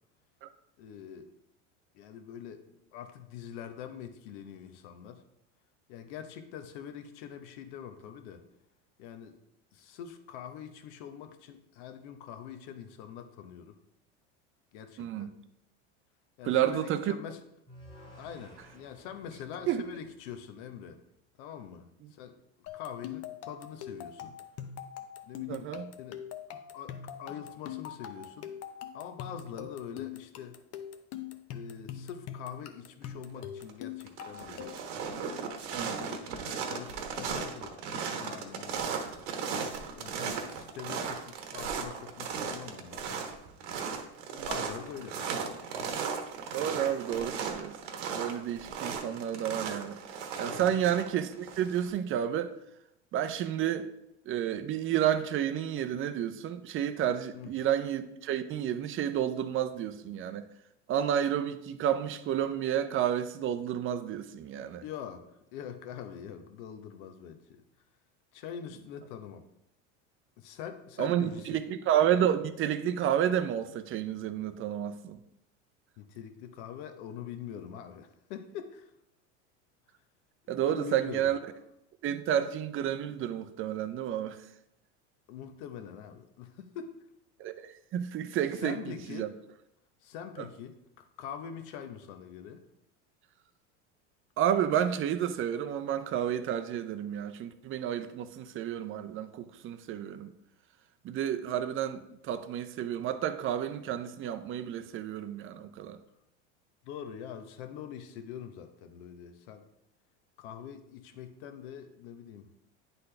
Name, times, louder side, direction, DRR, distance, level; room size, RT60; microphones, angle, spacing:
voice 1, 0.8-1.3 1.9-2.6 2.9-5.2 5.9-8.4 9.0-9.4 9.7-13.8 14.7-15.3 16.4-17.4 18.2-21.0 21.4-22.4 22.7-24.3 25.3-25.7 26.0-26.2 26.7-28.5 28.9-30.6 31.5-34.8 35.6-36.2 36.5-37.8 38.2-39.1 40.0-43.2 44.4-45.5 50.5-50.8 57.3-57.5 64.8-65.3 65.5-67.6 68.3-69.5 70.4-71.6 76.0-78.9 80.6-81.3 85.3-87.0 88.5-89.3 90.0-92.6 106.8-109.6 110.4-112.6, left 8 dB, 70° left, 0.9 m, -44 dB
voice 2, 15.0-15.3 16.4-17.1 19.7-19.8 22.0-22.1 25.5-25.9 35.7-36.0 40.2-40.4 44.3-44.5 46.5-47.8 48.1-50.0 50.4-52.5 53.1-53.9 54.3-60.5 60.9-64.8 71.0-75.2 80.5-81.4 82.0-84.4 87.4-89.3 90.4-90.5 94.4-100.3 101.0-106.0, right 10 dB, 35° right, 0.5 m, -30 dB
sound 1, 17.7-20.9, equal, 15° left, 2.1 m, -54 dB
sound 2, 22.7-35.0, left 9 dB, 45° left, 0.6 m, -43 dB
sound 3, 33.4-33.7 34.0-51.9, right 6 dB, 80° right, 1.2 m, -36 dB
9.8 x 4.0 x 3.3 m
supercardioid pair, 110°, 36 cm